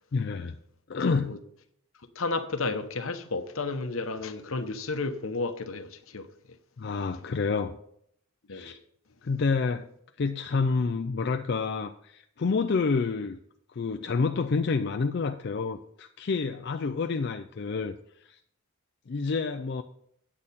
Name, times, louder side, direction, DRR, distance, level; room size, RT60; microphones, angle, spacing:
voice 1, 0.1-0.5 0.9-1.3 6.8-7.8 8.5-8.8 9.2-9.9 10.2-13.4 13.7-17.9 18.2-18.4 19.1-19.8, left 4 dB, 50° left, 0.4 m, -28 dB
voice 2, 1.0-1.4 2.2-6.3 8.5-8.7, left 3 dB, 75° left, 0.9 m, -32 dB
8.6 x 8.6 x 4.2 m
head